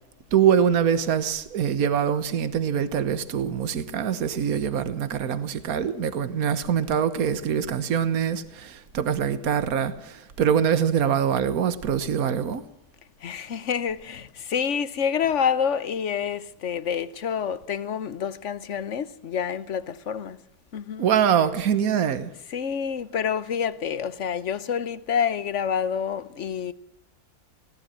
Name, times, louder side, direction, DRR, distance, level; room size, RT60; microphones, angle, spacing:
voice 1, 0.3-12.6 21.0-22.3, right 8 dB, 70° right, 1.7 m, -24 dB
voice 2, 13.2-20.4 20.7-21.1 22.5-26.7, left 7 dB, 55° left, 1.3 m, -28 dB
20.5 x 17.5 x 7.6 m
omnidirectional pair, 1.6 m